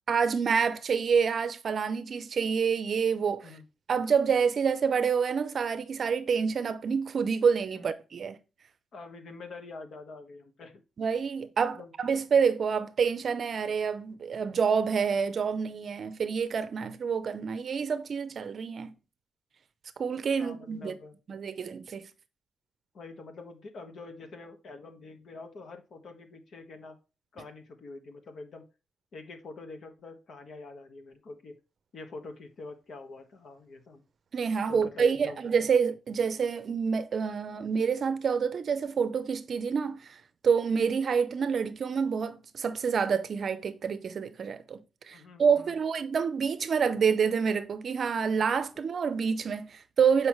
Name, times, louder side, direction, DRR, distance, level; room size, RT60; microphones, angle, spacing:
voice 1, 0.1-3.5 3.9-8.4 11.0-18.9 20.0-21.0 21.3-22.1 34.3-40.2 40.4-50.3, right 6 dB, 50° right, 0.6 m, -27 dB
voice 2, 8.9-10.8 11.7-11.9 20.4-21.1 22.9-27.0 27.3-28.6 29.1-31.6 31.9-34.0 34.7-35.4 45.1-45.8, left 3 dB, 55° left, 1.3 m, -45 dB
7.9 x 5.3 x 3.1 m
cardioid pair, 135°, 0 cm